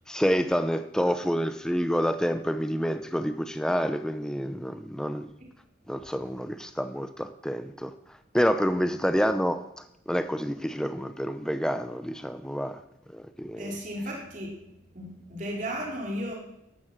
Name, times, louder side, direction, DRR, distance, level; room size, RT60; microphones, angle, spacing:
voice 1, 0.1-5.3 5.9-7.9 8.3-9.6 10.1-12.8 13.1-13.7, equal, 5° left, 9 dB, 0.6 m, -28 dB
voice 2, 13.5-14.6 15.0-16.4, equal, 40° right, -1 dB, 3.5 m, -34 dB
14.0 x 11.5 x 7.4 m, 0.85 s
head